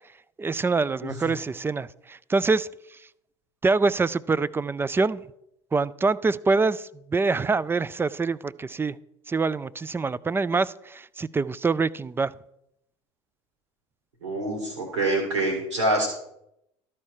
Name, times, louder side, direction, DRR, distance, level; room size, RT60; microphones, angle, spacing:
voice 1, 0.4-2.7 3.6-5.2 5.7-9.0 9.3-12.3, right 4 dB, 15° right, 18 dB, 0.3 m, -25 dB
voice 2, 14.2-16.1, right 2 dB, 85° right, 0 dB, 2.3 m, -25 dB
13.0 x 4.4 x 6.4 m, 0.80 s
hypercardioid pair, 70°, 15 cm